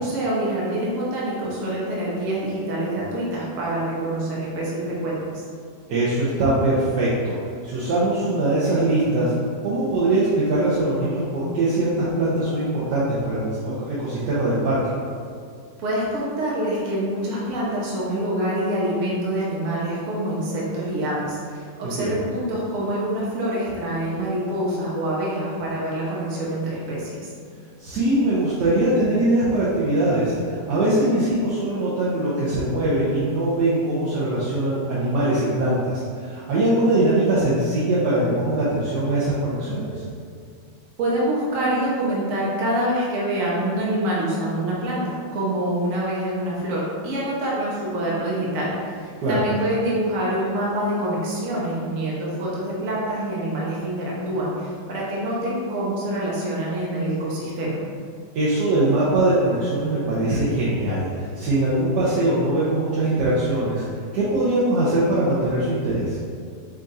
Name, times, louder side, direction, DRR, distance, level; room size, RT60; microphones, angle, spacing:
voice 1, 0.0-5.5 15.8-27.3 41.0-57.8, right 1 dB, 60° right, -6 dB, 1.1 m, -26 dB
voice 2, 5.9-7.4 7.6-9.3 9.6-14.9 21.8-22.1 27.8-40.1 49.2-49.4 58.3-63.8 64.1-66.2, right 1 dB, 85° right, -9 dB, 1.4 m, -22 dB
5.0 x 2.5 x 4.1 m, 2.2 s
omnidirectional pair, 1.7 m